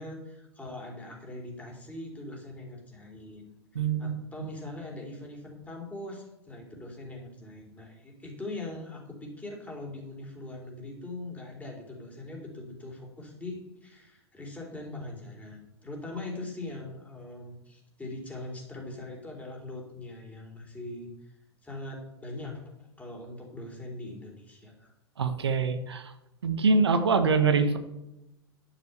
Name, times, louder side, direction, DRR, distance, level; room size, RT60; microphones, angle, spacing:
voice 1, 0.0-3.5 4.0-21.1 21.6-24.9, left 2 dB, 10° left, 0 dB, 3.4 m, -41 dB
voice 2, 3.7-4.1 25.2-26.1 26.4-27.8, right 4 dB, 75° right, 8 dB, 1.1 m, -24 dB
10.5 x 7.1 x 6.8 m, 0.92 s
figure-of-eight pair, 100°, 14 cm